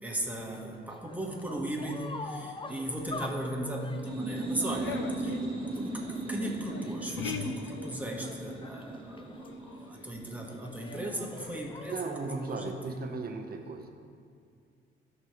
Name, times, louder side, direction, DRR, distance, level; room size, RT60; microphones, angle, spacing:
voice 1, 0.0-5.4 5.8-12.0 12.5-13.0, right 1 dB, 10° right, -2 dB, 1.9 m, -37 dB
sound 1, 0.5-12.5, left 3 dB, 25° left, 0.6 m, -46 dB
sound 2, 3.9-11.4, right 2 dB, 30° right, 1.6 m, -38 dB
sound 3, 4.8-8.8 9.1-10.8 11.1-12.1, left 7 dB, 75° left, 0.7 m, -42 dB
voice 2, 11.9-13.9, right 4 dB, 50° right, 4 dB, 1.2 m, -36 dB
16.5 x 6.6 x 3.3 m, 2.2 s
cardioid pair, 90°, 20 cm